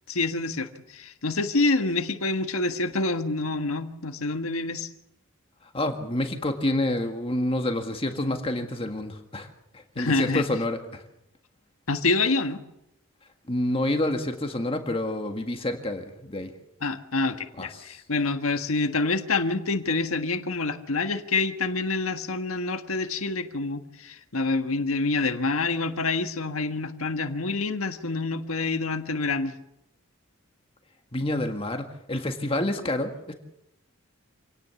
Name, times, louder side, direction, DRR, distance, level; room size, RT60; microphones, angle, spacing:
voice 1, 0.1-4.9 9.9-10.4 11.9-12.6 16.8-29.5, left 3 dB, 85° left, 7 dB, 1.6 m, -27 dB
voice 2, 5.7-9.5 9.7-11.0 13.5-16.5 17.6-18.0 31.1-33.3, left 1 dB, 25° left, 4 dB, 1.8 m, -28 dB
27.0 x 18.5 x 7.1 m, 0.82 s
head